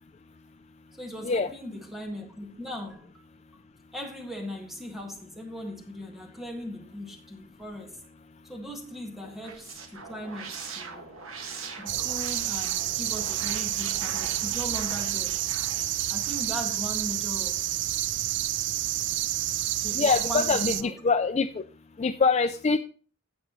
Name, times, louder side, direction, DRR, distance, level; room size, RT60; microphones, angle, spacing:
voice 1, 1.0-3.1 3.9-8.0 8.4-11.0 11.8-15.3 16.1-17.7 19.5-21.0, equal, ahead, 1.8 m, -39 dB
sound 1, 9.2-17.3, right 5 dB, 70° right, 1.5 m, -42 dB
sound 2, 11.9-20.8, right 13 dB, 55° right, 0.4 m, -29 dB
voice 2, 19.9-21.6 22.0-22.8, left 4 dB, 30° left, 0.3 m, -24 dB
16.0 x 6.0 x 3.1 m
head